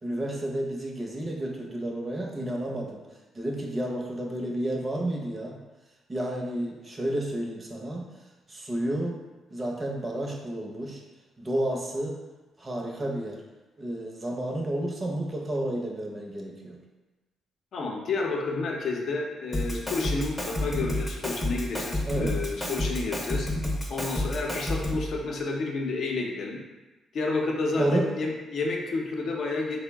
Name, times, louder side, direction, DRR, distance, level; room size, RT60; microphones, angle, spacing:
voice 1, 0.0-3.0 3.3-5.6 6.1-8.0 8.5-9.2 9.5-11.0 11.4-12.2 12.6-13.4 13.8-16.8 22.0-22.4 27.8-28.3, right 1 dB, 25° right, 0 dB, 0.7 m, -31 dB
voice 2, 17.7-23.5 23.9-26.6 27.1-29.8, left 3 dB, 60° left, 0 dB, 0.6 m, -30 dB
Drum kit, 19.5-25.1, left 1 dB, 15° left, 0.7 m, -30 dB
3.7 x 2.1 x 3.4 m, 1.1 s
cardioid pair, 90°, 0 cm